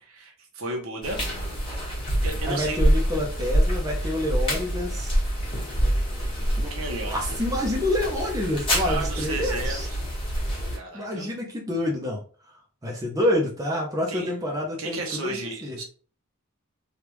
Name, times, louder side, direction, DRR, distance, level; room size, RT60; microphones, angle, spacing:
voice 1, 0.0-1.2 2.2-2.8 6.7-7.2 8.8-10.0 10.7-11.3 14.1-14.3 14.8-15.8, right 2 dB, 65° right, 1 dB, 0.9 m, -33 dB
sound 1, 1.0-10.8, equal, 25° left, 1.4 m, -26 dB
voice 2, 2.4-5.2 6.6-6.7 7.1-9.9 10.9-12.2 12.8-15.8, left 1 dB, 15° right, -2 dB, 0.6 m, -28 dB
3.4 x 2.4 x 3.0 m, 0.40 s
head